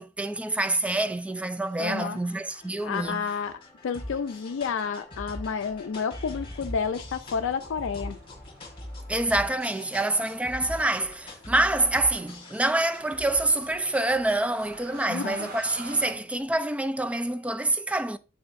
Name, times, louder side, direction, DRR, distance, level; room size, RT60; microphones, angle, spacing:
voice 1, 0.0-3.3 9.1-18.2, right 2 dB, 5° right, 0.3 m, -26 dB
sound 1, 1.3-16.8, left 1 dB, 30° left, 1.8 m, -43 dB
voice 2, 1.8-2.2 2.8-3.5 3.8-8.2 15.1-15.5, left 6 dB, 65° left, 0.4 m, -30 dB
sound 2, 7.4-16.1, right 3 dB, 50° right, 1.1 m, -48 dB
7.5 x 5.6 x 2.5 m
head